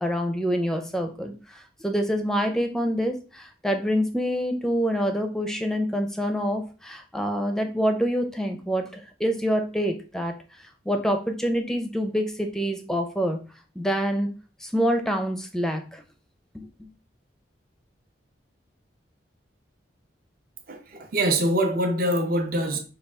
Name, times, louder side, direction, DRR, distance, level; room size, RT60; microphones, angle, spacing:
voice 1, 0.0-10.4 10.9-13.4 13.8-14.3 14.6-16.0 16.5-16.9, equal, 5° left, 0.5 m, -26 dB
voice 2, 20.7-22.8, right 1 dB, 50° right, 0.6 m, -24 dB
5.4 x 2.4 x 3.4 m
head